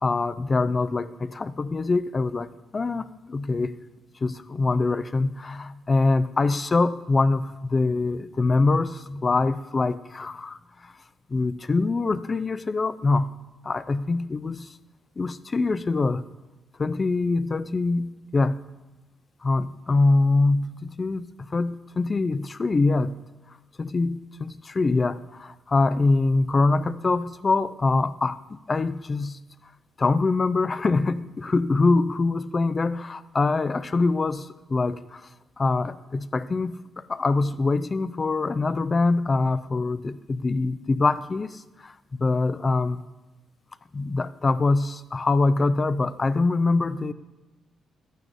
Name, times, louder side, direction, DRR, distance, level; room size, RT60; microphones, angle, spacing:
voice 1, 0.0-3.7 4.2-10.9 11.3-13.3 13.6-14.7 15.2-16.2 16.8-18.6 19.4-23.2 23.8-29.4 30.0-35.3 35.6-43.0 43.9-47.1, left 3 dB, 35° left, 14 dB, 0.4 m, -24 dB
12.0 x 9.1 x 2.6 m, 1.1 s
cardioid pair, 80°, 0 cm